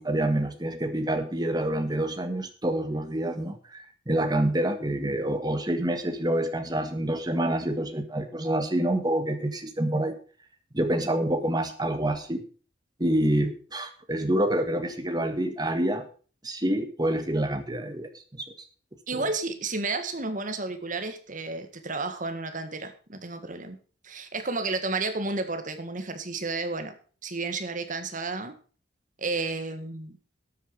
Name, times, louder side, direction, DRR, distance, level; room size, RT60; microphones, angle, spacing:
voice 1, 0.0-10.2 10.7-12.4 13.0-16.1 16.4-18.4 19.1-19.2, right 1 dB, 20° right, 7 dB, 1.7 m, -27 dB
voice 2, 19.1-23.8 24.0-26.9 27.2-28.5 29.2-30.1, right 3 dB, 45° right, 8 dB, 1.8 m, -32 dB
12.5 x 8.4 x 5.4 m, 0.40 s
head